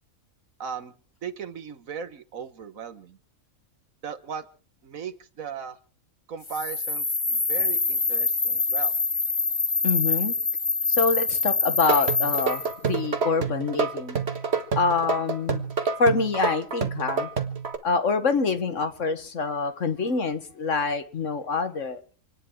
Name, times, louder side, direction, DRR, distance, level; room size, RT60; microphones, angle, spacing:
voice 1, 0.6-0.9 1.2-3.2 4.0-4.4 4.8-5.8 6.3-8.9, right 6 dB, 70° right, 1.6 m, -37 dB
sound 1, 6.4-12.7, left 4 dB, 25° left, 0.9 m, -25 dB
voice 2, 9.8-10.3 10.9-14.2 14.7-15.6 16.0-17.3 17.8-22.0, left 4 dB, 60° left, 1.8 m, -25 dB
sound 2, 11.8-17.8, right 5 dB, 50° right, 1.7 m, -28 dB
27.5 x 10.5 x 4.7 m
omnidirectional pair, 1.5 m